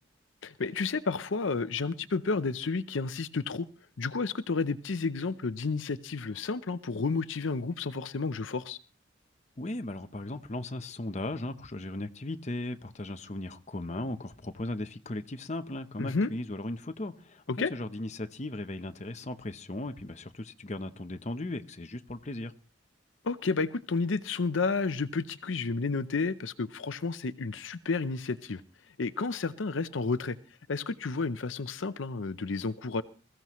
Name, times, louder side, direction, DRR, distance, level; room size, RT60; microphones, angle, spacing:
voice 1, 0.4-3.7 4.0-8.8 16.0-16.3 17.5-17.7 23.2-28.6 29.0-30.4 30.7-33.0, left 4 dB, 75° left, 0.6 m, -31 dB
voice 2, 9.6-17.4 17.7-22.5, left 1 dB, 35° left, 0.8 m, -37 dB
21.5 x 15.0 x 3.1 m
head